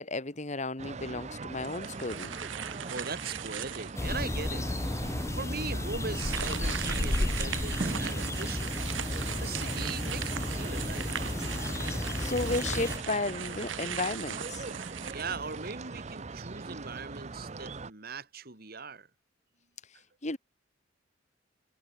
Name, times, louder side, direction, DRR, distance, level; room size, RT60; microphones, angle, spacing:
voice 1, 0.0-2.3 12.2-14.7 20.2-20.4, left 2 dB, 35° left, 1.8 m, -33 dB
sound 1, 0.8-17.9, right 3 dB, 35° right, 0.7 m, -41 dB
sound 2, 1.6-4.1 4.7-4.8 6.1-15.9, right 9 dB, 85° right, 1.6 m, -39 dB
voice 2, 2.9-4.7 5.3-8.8 9.4-11.3 15.1-19.1, right 4 dB, 50° right, 2.3 m, -40 dB
sound 3, 4.0-13.0, left 1 dB, 15° left, 0.4 m, -33 dB
head